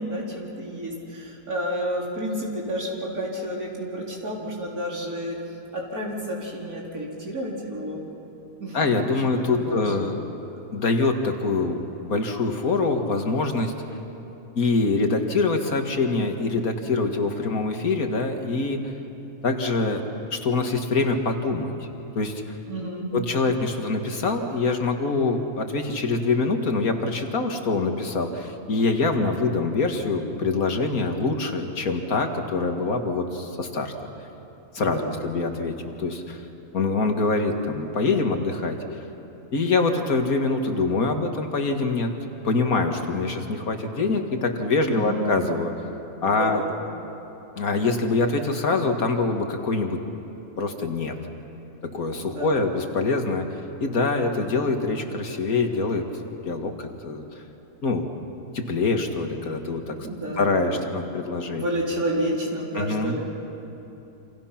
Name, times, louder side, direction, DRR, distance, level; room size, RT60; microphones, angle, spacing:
voice 1, 0.0-5.4 5.7-8.0 8.6-8.8 9.4-9.9 22.7-23.1 34.8-35.2 45.0-45.3 46.2-46.8 52.2-52.7 59.9-60.8 61.5-63.3, right 1 dB, 90° right, -3 dB, 4.6 m, -30 dB
voice 2, 8.7-10.2 10.7-13.7 14.6-18.9 19.4-20.0 20.3-21.9 22.2-22.4 23.1-33.9 34.7-36.4 36.7-38.8 39.5-42.1 42.4-45.7 46.2-46.6 47.6-50.0 50.6-51.1 51.8-57.3 57.8-58.1 58.5-60.0 60.4-61.6 62.7-63.2, left 3 dB, 75° left, 4 dB, 2.2 m, -24 dB
28.5 x 27.0 x 5.9 m, 3.0 s
omnidirectional pair, 1.5 m